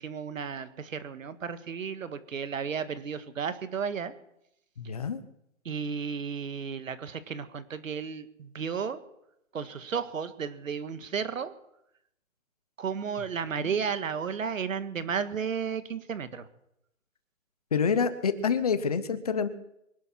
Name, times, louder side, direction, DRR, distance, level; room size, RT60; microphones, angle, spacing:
voice 1, 0.0-4.1 5.6-9.0 9.5-11.5 12.8-16.5, right 6 dB, 75° right, 11 dB, 1.7 m, -33 dB
voice 2, 4.8-5.2 13.6-13.8 17.7-19.5, left 6 dB, 30° left, 13 dB, 0.8 m, -27 dB
24.5 x 11.5 x 4.4 m, 0.81 s
hypercardioid pair, 175°, 40 cm